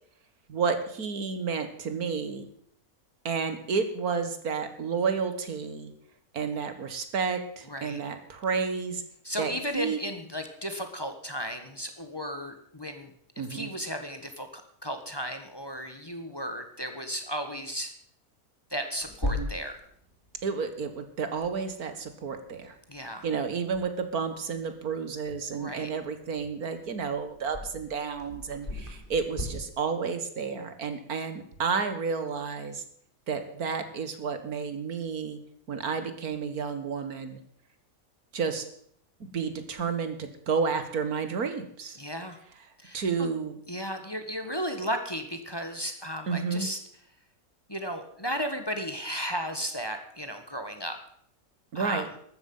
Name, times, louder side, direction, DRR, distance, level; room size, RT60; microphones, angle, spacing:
voice 1, 0.5-2.5 3.3-5.9 6.3-9.0 9.4-10.0 13.4-13.7 19.2-19.5 20.4-22.8 23.2-32.8 33.3-35.4 35.7-37.4 38.3-38.7 39.2-42.0 42.9-43.6 46.3-46.7 51.7-52.1, right 5 dB, 80° right, 9 dB, 2.1 m, -31 dB
voice 2, 7.7-8.0 9.2-13.1 13.5-17.9 18.7-19.8 22.9-23.2 25.5-25.9 42.0-42.4 42.8-43.0 43.7-46.8 47.7-51.0 51.7-52.0, equal, 15° left, 6 dB, 1.5 m, -34 dB
Clock, 19.0-29.4, left 2 dB, 35° left, 3.7 m, -41 dB
14.5 x 13.0 x 5.6 m, 0.66 s
omnidirectional pair, 1.6 m